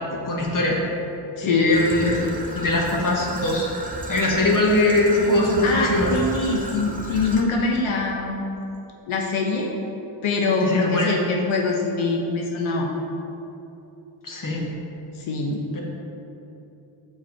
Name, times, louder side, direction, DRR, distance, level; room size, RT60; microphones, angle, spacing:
voice 1, 0.1-0.8 1.4-2.3 2.5-3.7 4.1-6.1 10.6-11.2 14.2-14.7 15.7-15.8, left 2 dB, 40° left, -2 dB, 1.4 m, -22 dB
voice 2, 1.4-1.7 5.6-8.4 9.1-9.7 10.2-12.9 15.2-15.6, left 3 dB, 75° left, 0 dB, 0.9 m, -23 dB
Traffic noise roadway noise / Trickle dribble, 1.7-7.4, right 1 dB, 15° right, 0.8 m, -34 dB
6.2 x 5.2 x 4.3 m, 2.9 s
cardioid pair, 70°, 49 cm